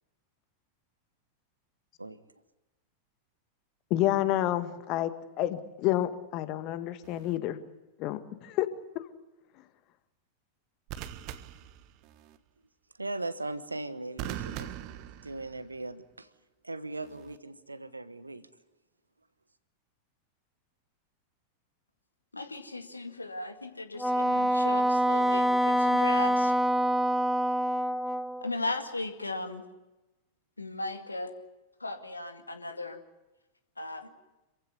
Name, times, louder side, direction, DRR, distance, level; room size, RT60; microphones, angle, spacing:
voice 1, 3.9-5.1 5.4-7.6 8.0-8.7 9.0-9.1, left 14 dB, 40° left, 11 dB, 1.7 m, -29 dB
sound 1, 7.0-7.4 10.9-12.4 14.2-15.8 17.0-17.4, right 11 dB, 45° right, 1.3 m, -41 dB
voice 2, 13.0-14.7 15.2-16.3 16.6-18.4, right 2 dB, 80° right, 13 dB, 1.2 m, -38 dB
voice 3, 22.3-26.5 28.4-29.6 30.6-31.3 31.8-33.0 33.8-34.1, left 2 dB, 80° left, 7 dB, 2.0 m, -37 dB
Wind instrument woodwind instrument, 24.0-28.5, equal, ahead, 0.9 m, -25 dB
27.0 x 15.5 x 9.6 m, 1.0 s
figure-of-eight pair, 90°, 0 cm